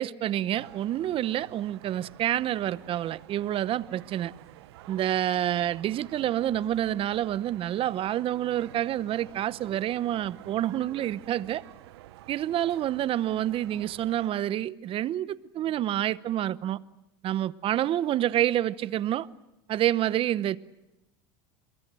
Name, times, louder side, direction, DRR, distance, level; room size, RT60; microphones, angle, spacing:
voice 1, 0.0-4.3 4.9-11.6 12.3-16.8 17.2-19.3 19.7-20.6, right 12 dB, 45° right, 0.9 m, -28 dB
sound 1, 0.5-14.3, right 15 dB, 80° right, 1.0 m, -50 dB
27.0 x 22.5 x 7.6 m
supercardioid pair, 105°, 13 cm